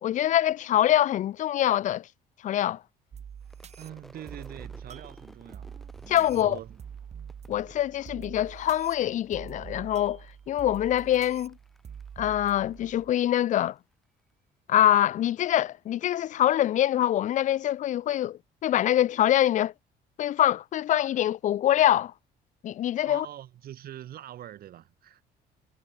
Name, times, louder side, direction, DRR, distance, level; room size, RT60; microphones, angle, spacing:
voice 1, 0.0-2.1 2.4-2.8 6.1-6.6 7.5-11.5 12.2-13.8 14.7-19.7 20.2-22.1 22.6-23.3, left 12 dB, 45° left, 0.4 m, -24 dB
sound 1, 3.1-13.1, right 7 dB, 40° right, 2.4 m, -45 dB
Crowd / Fireworks, 3.4-8.8 9.1-9.8 10.1-13.6, equal, ahead, 2.0 m, -55 dB
voice 2, 3.8-5.8 6.3-6.8 23.1-25.2, right 12 dB, 65° right, 5.4 m, -43 dB
cardioid pair, 110°, 17 cm